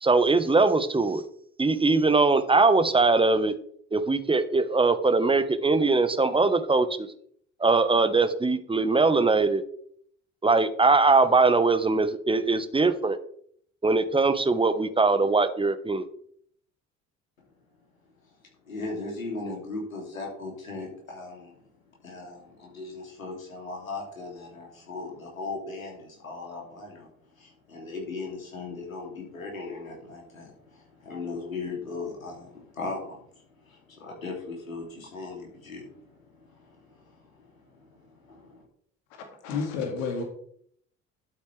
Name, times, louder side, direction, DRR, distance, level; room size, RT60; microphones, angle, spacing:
voice 1, 0.0-1.2 1.6-3.5 3.9-7.1 7.6-9.6 10.4-13.2 13.8-16.0, right 3 dB, 15° right, 11 dB, 1.2 m, -21 dB
voice 2, 18.7-21.6 22.0-27.1 27.4-33.2 33.6-38.6, left 3 dB, 90° left, -1 dB, 2.8 m, -38 dB
voice 3, 39.4-40.2, left 5 dB, 70° left, 3 dB, 2.2 m, -30 dB
12.0 x 8.1 x 3.3 m, 0.63 s
figure-of-eight pair, 55°, 40 cm